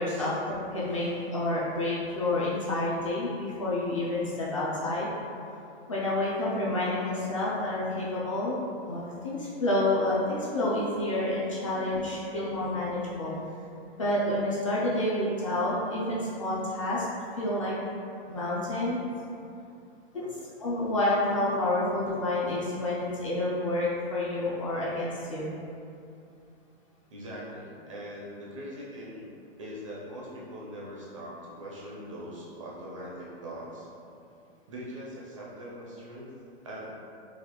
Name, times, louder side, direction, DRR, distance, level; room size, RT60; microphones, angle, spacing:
voice 1, 0.0-5.1 5.9-8.6 8.9-13.3 14.0-17.1 17.4-17.7 18.3-19.0 20.6-25.5, left 1 dB, 30° left, -7 dB, 0.4 m, -29 dB
voice 2, 11.6-11.9 20.2-20.3 27.1-29.3 29.6-33.9 34.7-36.3 36.6-36.9, equal, 30° right, -5 dB, 0.4 m, -42 dB
4.0 x 2.4 x 2.9 m, 2.6 s
hypercardioid pair, 170°, 32 cm